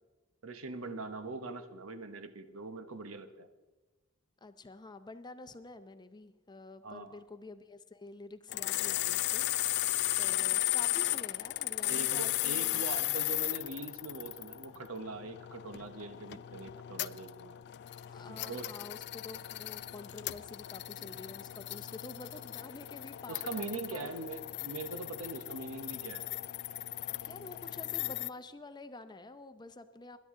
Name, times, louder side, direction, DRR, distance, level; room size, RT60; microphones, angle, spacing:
voice 1, 0.4-3.5 6.8-7.2 11.9-17.6 18.3-18.7 21.0-21.1 23.3-26.3, right 3 dB, 90° right, 10 dB, 1.0 m, -42 dB
voice 2, 4.4-9.9 10.2-12.8 17.9-24.1 27.2-30.2, left 2 dB, 20° left, 10 dB, 0.6 m, -49 dB
sound 1, 8.5-28.3, left 16 dB, 55° left, 0.3 m, -36 dB
21.0 x 11.0 x 3.7 m, 1.2 s
head